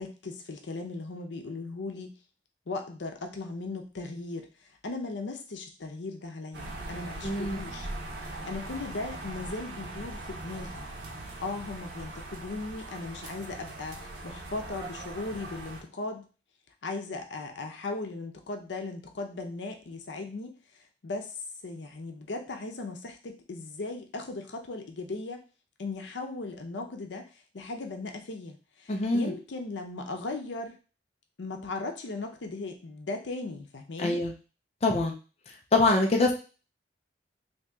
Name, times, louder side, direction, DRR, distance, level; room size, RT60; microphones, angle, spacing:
voice 1, 0.0-2.2 2.7-4.5 4.8-7.9 8.2-10.9 11.4-16.2 16.8-21.4 21.6-25.4 25.8-30.8 31.4-34.2, left 3 dB, 90° left, 4 dB, 0.6 m, -37 dB
sound 1, 6.5-15.8, right 2 dB, 90° right, 0.8 m, -40 dB
voice 2, 7.2-7.6 28.9-29.3 34.0-34.3 34.8-35.1 35.7-36.3, left 2 dB, 35° left, 2 dB, 0.5 m, -24 dB
2.8 x 2.7 x 3.4 m, 0.34 s
head